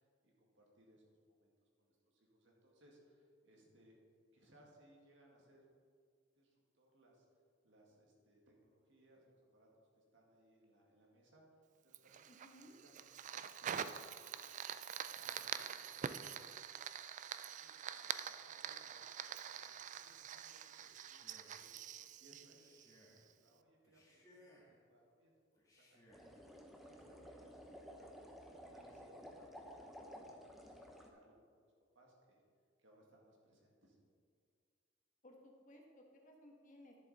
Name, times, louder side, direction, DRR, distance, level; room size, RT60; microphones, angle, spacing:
voice 1, 0.0-1.5 1.8-4.0 4.3-5.7 6.4-12.4 12.7-14.6 15.1-16.6 16.9-25.3 25.6-27.4 27.7-28.3 28.6-32.4 32.8-34.0, right 1 dB, 70° right, -1 dB, 2.0 m, -69 dB
Fire, 11.9-23.3, right 8 dB, 40° right, 0.3 m, -46 dB
voice 2, 12.3-12.7 35.2-37.0, left 1 dB, 40° left, 1 dB, 1.3 m, -60 dB
Male speech man speaking, 20.8-21.7 22.5-23.2 23.8-24.8 25.6-26.3, equal, 15° left, 1.7 m, -66 dB
sound 1, 26.1-31.1, equal, ahead, 0.8 m, -54 dB
11.0 x 7.1 x 4.2 m, 2.1 s
head